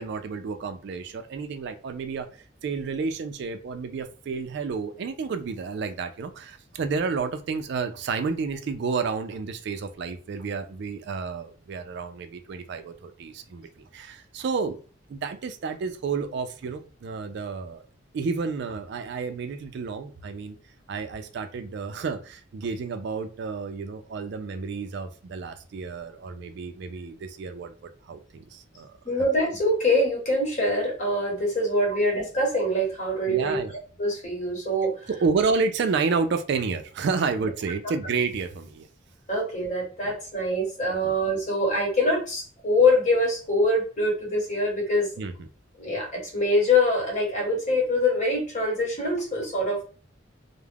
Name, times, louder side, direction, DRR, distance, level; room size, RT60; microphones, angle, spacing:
voice 1, 0.0-13.7 13.9-14.8 15.1-17.8 18.1-20.6 20.9-29.0 31.9-32.0 33.3-33.7 35.1-38.9 41.0-41.1 45.2-45.3, right 4 dB, 60° right, 8 dB, 0.3 m, -30 dB
voice 2, 29.0-33.6 34.0-35.1 39.3-45.1 45.8-49.8, left 1 dB, 40° left, -1 dB, 1.0 m, -24 dB
2.3 x 2.0 x 3.3 m, 0.38 s
head